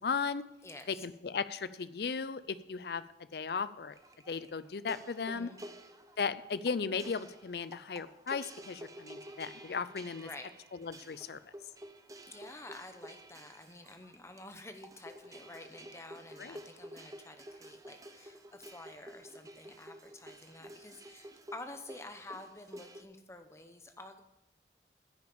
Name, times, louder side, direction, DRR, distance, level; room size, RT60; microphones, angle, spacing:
voice 1, 0.0-0.4 0.9-3.0 3.3-3.9 4.3-5.5 6.2-10.3 10.8-11.4 16.4-16.6, left 5 dB, 65° left, 15 dB, 0.5 m, -36 dB
voice 2, 0.6-1.0 5.2-5.6 10.1-10.5 12.3-24.2, left 2 dB, 15° left, 7 dB, 0.8 m, -50 dB
sound 1, 3.9-23.0, right 1 dB, 20° right, 0.7 m, -51 dB
10.0 x 6.4 x 7.0 m, 0.93 s
head